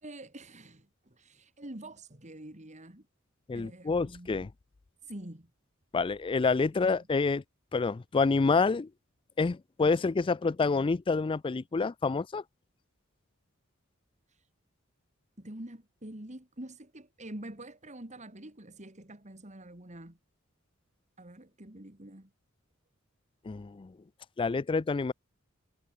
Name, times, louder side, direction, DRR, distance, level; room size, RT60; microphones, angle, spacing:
voice 1, 0.0-3.1 3.5-4.5 5.0-5.5 14.3-14.5 15.4-20.2 21.2-22.3, right 1 dB, 35° right, 3.1 m, -46 dB
voice 2, 3.5-4.5 5.9-7.4 7.7-8.9 9.4-12.4 23.5-23.9 24.4-25.1, left 4 dB, 25° left, 0.4 m, -28 dB
head